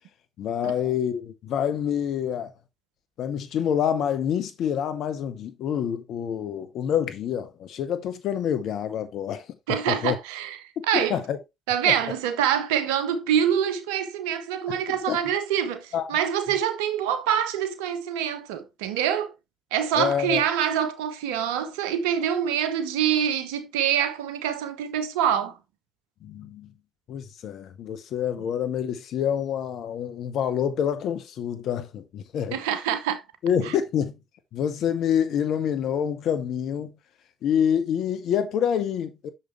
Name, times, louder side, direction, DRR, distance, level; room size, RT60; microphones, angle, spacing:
voice 1, 0.4-2.5 3.2-9.5 9.9-10.2 10.8-11.4 11.8-11.9 14.7-15.2 15.9-16.2 19.9-20.4 26.2-26.7 27.1-32.6 33.4-34.1 34.5-36.9 37.4-39.3, left 8 dB, 70° left, 1.0 m, -27 dB
voice 2, 9.7-10.6 10.9-11.2 11.7-19.3 19.7-25.5 32.5-33.2, right 9 dB, 85° right, 0.8 m, -25 dB
6.6 x 5.7 x 3.1 m
hypercardioid pair, 50°, 0 cm